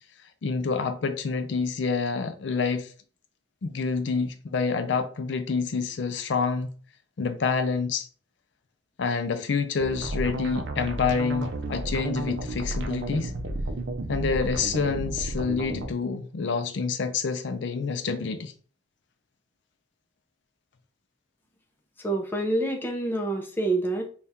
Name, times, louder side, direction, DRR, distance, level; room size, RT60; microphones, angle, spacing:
voice 1, 0.4-2.9 3.6-6.7 7.2-8.1 9.0-13.3 14.1-18.5, left 5 dB, 65° left, 0.4 m, -27 dB
sound 1, 9.8-15.9, right 2 dB, 65° right, 0.5 m, -32 dB
voice 2, 22.0-24.1, right 2 dB, 10° left, 0.5 m, -27 dB
3.5 x 2.3 x 4.1 m
head